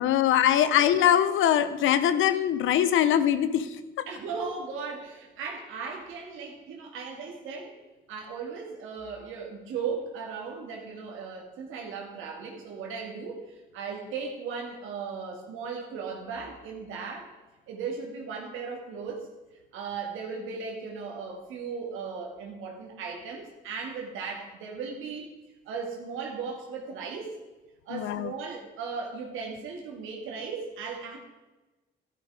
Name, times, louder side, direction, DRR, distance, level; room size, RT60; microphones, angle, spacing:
voice 1, 0.0-4.1 27.9-28.3, left 10 dB, 85° left, 13 dB, 0.9 m, -23 dB
voice 2, 4.1-7.7 8.1-17.3 17.7-19.3 19.7-25.3 25.7-27.4 27.9-31.2, right 5 dB, 90° right, 0 dB, 2.4 m, -37 dB
12.0 x 11.5 x 4.9 m, 1.2 s
cardioid pair, 90°, 20 cm